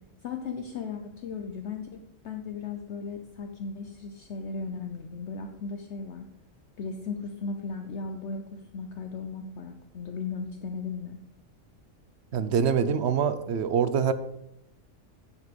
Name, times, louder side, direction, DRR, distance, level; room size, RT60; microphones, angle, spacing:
voice 1, 0.2-6.3 6.8-11.2, left 5 dB, 65° left, 5 dB, 1.0 m, -36 dB
voice 2, 12.3-14.1, right 7 dB, 60° right, 12 dB, 1.0 m, -25 dB
9.5 x 7.5 x 5.3 m, 0.82 s
omnidirectional pair, 1.3 m